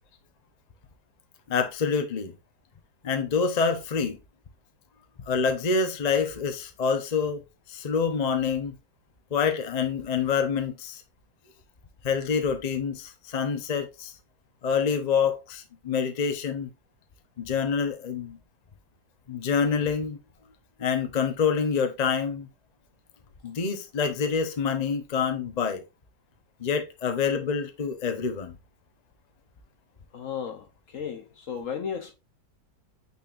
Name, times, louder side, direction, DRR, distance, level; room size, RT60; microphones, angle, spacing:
voice 1, 1.5-2.3 3.0-4.2 5.3-7.4 7.7-8.8 9.3-11.0 12.0-14.1 14.6-16.7 17.4-18.4 19.3-20.2 20.8-22.5 23.4-25.8 26.6-28.5, left 6 dB, 35° left, 0.7 m, -26 dB
voice 2, 30.1-32.1, left 7 dB, 60° left, 0.9 m, -34 dB
8.9 x 4.3 x 2.5 m
omnidirectional pair, 1.8 m